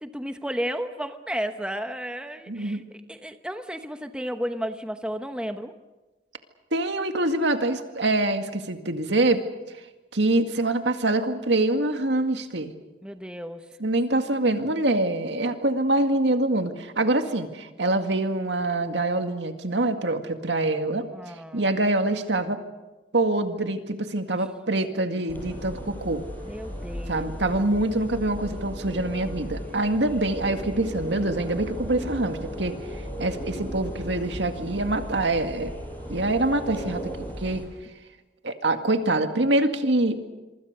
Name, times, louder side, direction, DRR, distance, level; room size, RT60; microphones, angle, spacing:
voice 1, 0.0-2.8 3.1-5.7 13.0-13.7 21.1-21.6 26.4-27.3, equal, 5° right, 8 dB, 1.0 m, -33 dB
voice 2, 2.5-2.8 6.7-9.4 10.1-12.7 13.8-21.1 21.5-22.6 23.1-26.2 27.1-32.7 33.2-35.7 36.1-37.6 38.4-40.2, right 2 dB, 75° right, 7 dB, 2.1 m, -25 dB
sound 1, 25.3-37.7, equal, 10° left, 6.0 m, -36 dB
26.5 x 24.5 x 6.7 m, 1.1 s
head